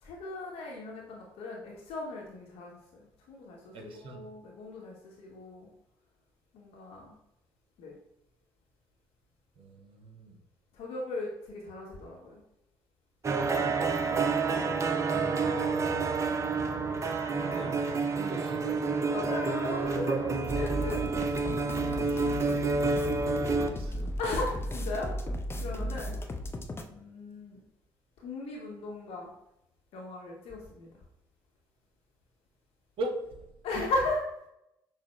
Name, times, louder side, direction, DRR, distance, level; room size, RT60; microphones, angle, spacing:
voice 1, 0.0-2.8 3.3-5.7 6.5-7.2 7.8-7.9 10.7-12.4 14.5-14.8 19.1-21.3 24.2-25.3 25.6-26.2 26.9-27.6 28.2-29.3 29.9-30.9 33.6-34.3, left 2 dB, 55° left, -1 dB, 0.8 m, -37 dB
voice 2, 3.7-4.2 9.6-10.4 13.7-14.3 16.9-17.1 17.4-19.1 22.1-22.9 23.2-24.0 25.7-25.8 33.0-33.2, right 2 dB, 50° right, 3 dB, 0.9 m, -41 dB
sound 1, 13.2-23.7, right 4 dB, 25° right, 0.5 m, -29 dB
sound 2, 20.5-26.8, left 1 dB, 20° left, 0.5 m, -36 dB
6.0 x 2.1 x 3.0 m, 0.84 s
figure-of-eight pair, 45°, 12 cm